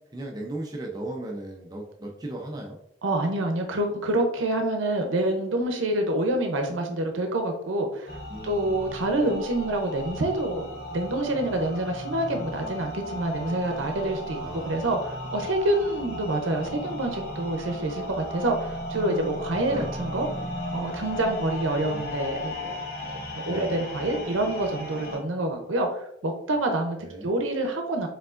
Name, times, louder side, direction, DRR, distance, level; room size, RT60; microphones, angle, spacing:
voice 1, 0.1-2.8 8.3-8.8 14.4-14.8 19.7-19.9 21.8-22.4 23.4-23.7 27.0-27.3, right 1 dB, 20° right, -1 dB, 0.5 m, -37 dB
voice 2, 3.0-8.1 8.4-14.4 14.6-20.3 20.7-22.8 23.0-27.0 27.2-28.1, right 1 dB, 85° right, 3 dB, 0.6 m, -27 dB
sound 1, 8.1-25.2, left 1 dB, 50° left, 0.7 m, -36 dB
4.6 x 3.6 x 2.4 m, 0.73 s
head